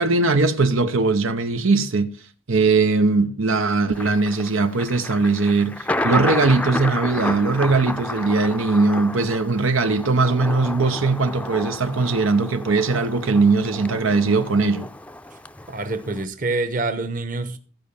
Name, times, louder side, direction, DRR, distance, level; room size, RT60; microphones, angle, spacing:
voice 1, 0.0-2.1 2.5-14.9, right 3 dB, 80° right, 0.9 m, -20 dB
Thunder, 4.0-16.2, left 1 dB, 5° left, 0.6 m, -31 dB
voice 2, 15.7-17.6, right 2 dB, 40° right, 1.2 m, -26 dB
15.0 x 5.3 x 7.0 m
head